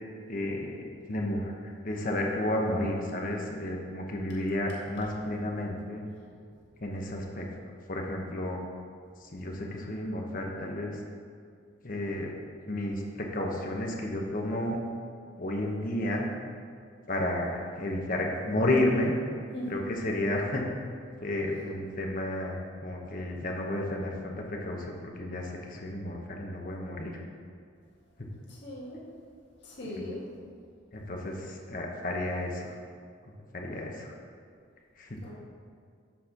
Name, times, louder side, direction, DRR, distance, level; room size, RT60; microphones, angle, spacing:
voice 1, 0.3-6.0 6.8-7.5 7.9-8.6 9.2-11.0 11.8-12.3 12.6-14.8 15.4-16.3 17.1-19.1 19.7-20.7 21.2-22.6 22.8-27.2 28.2-28.3 29.9-30.0 30.9-32.7 33.5-34.1 35.0-35.2, left 1 dB, 45° left, 0 dB, 0.9 m, -32 dB
voice 2, 19.5-19.9 28.5-29.0 29.6-30.5 35.2-35.3, equal, 60° left, -6 dB, 1.7 m, -39 dB
7.4 x 4.3 x 5.8 m, 2.2 s
head